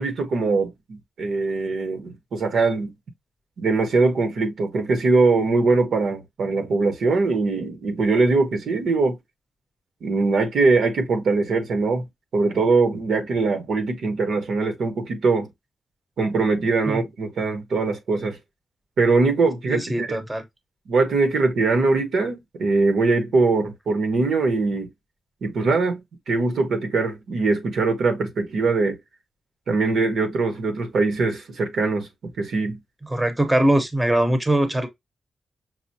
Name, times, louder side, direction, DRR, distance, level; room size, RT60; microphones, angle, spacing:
voice 1, 0.0-2.9 3.6-9.2 10.0-12.0 12.3-15.5 16.2-18.4 19.0-20.2 20.9-24.9 25.4-26.0 26.3-29.0 29.7-32.1 32.4-32.8, right 3 dB, 80° right, 1.1 m, -22 dB
voice 2, 19.7-20.4 33.0-34.9, right 1 dB, 10° right, 0.7 m, -21 dB
5.9 x 2.0 x 2.7 m
wide cardioid pair, 165°, 0 cm